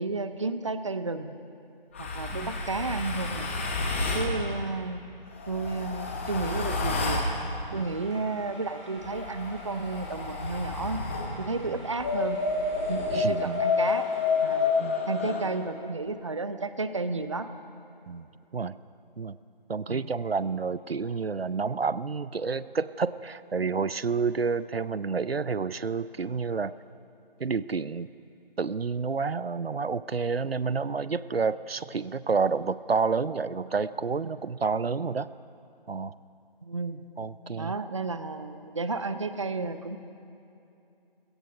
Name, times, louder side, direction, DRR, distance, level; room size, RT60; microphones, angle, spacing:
voice 1, 0.0-1.4 2.0-3.5 4.1-5.0 5.5-7.3 7.7-11.0 11.4-12.4 12.9-14.1 14.4-14.7 15.1-17.5 19.9-20.1 36.6-37.0 37.5-40.0, right 3 dB, 30° right, 11 dB, 0.7 m, -32 dB
sound 1, 1.9-4.3 5.3-7.3 9.0-11.3 12.0-15.4, left 4 dB, 15° left, 1.1 m, -29 dB
sound 2, 7.7-14.7, equal, 30° left, 4.6 m, -48 dB
voice 2, 13.1-13.6 14.8-15.0 18.1-18.3 18.5-18.8 19.2-19.4 19.7-26.7 27.4-28.1 28.6-35.3 35.9-36.2 37.2-37.7, right 5 dB, 80° right, 16 dB, 0.7 m, -29 dB
28.0 x 17.5 x 5.4 m, 2.7 s
figure-of-eight pair, 160°, 29 cm